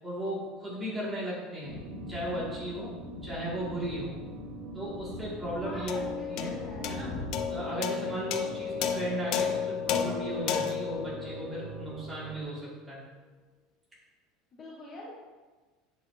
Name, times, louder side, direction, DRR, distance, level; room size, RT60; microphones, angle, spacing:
voice 1, 0.0-1.8 2.1-2.9 3.2-4.1 4.7-6.0 6.3-6.6 6.9-7.1 7.5-13.0, right 1 dB, 10° right, -7 dB, 2.1 m, -36 dB
sound 1, 1.6-7.4, left 3 dB, 70° left, 1.2 m, -43 dB
sound 2, 1.7-12.4, right 5 dB, 45° right, 0.6 m, -44 dB
voice 2, 5.6-7.0 8.4-8.7 14.5-15.1, left 1 dB, 25° left, -4 dB, 1.0 m, -45 dB
sound 3, 5.9-12.5, left 8 dB, 50° left, 0.5 m, -33 dB
8.3 x 6.4 x 2.7 m, 1.3 s
cardioid pair, 175°, 0 cm